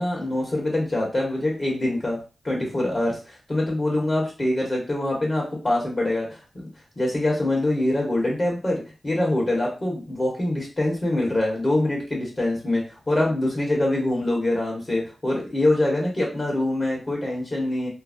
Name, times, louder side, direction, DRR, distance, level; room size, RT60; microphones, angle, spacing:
voice 1, 0.0-2.2 2.4-6.7 7.0-17.9, left 1 dB, 45° left, -2 dB, 1.4 m, -24 dB
3.0 x 2.0 x 2.5 m, 0.34 s
cardioid pair, 45°, 0 cm